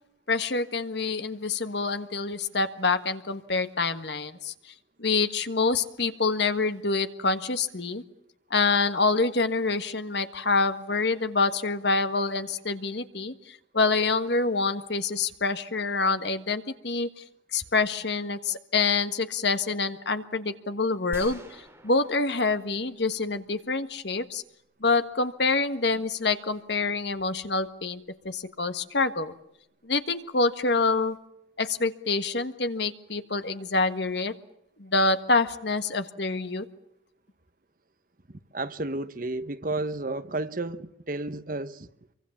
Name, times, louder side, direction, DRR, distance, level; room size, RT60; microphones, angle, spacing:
voice 1, 0.3-4.7 5.0-8.0 8.5-17.2 17.5-24.4 24.8-29.3 29.8-31.2 31.6-34.3 34.8-36.6, left 3 dB, 60° left, 1.6 m, -26 dB
sound 1, 21.1-23.4, right 1 dB, 10° right, 3.6 m, -46 dB
voice 2, 38.3-41.9, right 2 dB, 45° right, 1.1 m, -32 dB
26.0 x 24.0 x 7.2 m
head